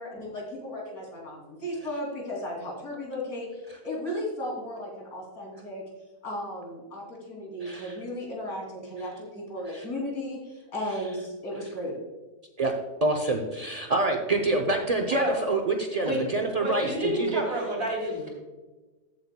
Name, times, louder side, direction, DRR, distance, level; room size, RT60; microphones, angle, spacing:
voice 1, 0.0-5.8 6.2-11.9, left 1 dB, 65° left, -2 dB, 3.3 m, -35 dB
voice 2, 7.6-7.9 9.7-9.8 12.6-12.7 13.0-17.4, right 2 dB, 60° right, 3 dB, 0.4 m, -27 dB
voice 3, 16.5-18.3, equal, 40° right, -2 dB, 3.5 m, -29 dB
14.0 x 8.2 x 2.2 m, 1.2 s
omnidirectional pair, 1.7 m